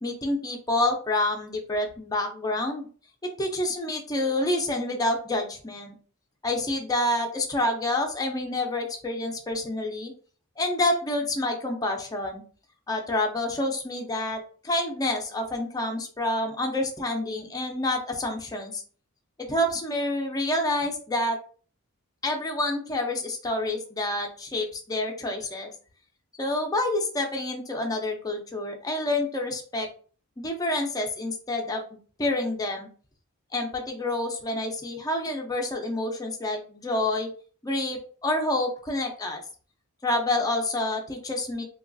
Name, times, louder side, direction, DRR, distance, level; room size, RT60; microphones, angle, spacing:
voice 1, 0.0-2.9 3.4-6.0 6.4-10.1 10.6-12.4 12.9-18.8 19.4-21.4 22.2-25.7 26.4-29.9 30.4-32.9 33.5-37.3 37.6-39.4 40.0-41.6, left 1 dB, 15° left, 2 dB, 0.5 m, -28 dB
3.0 x 2.3 x 2.5 m, 0.41 s
head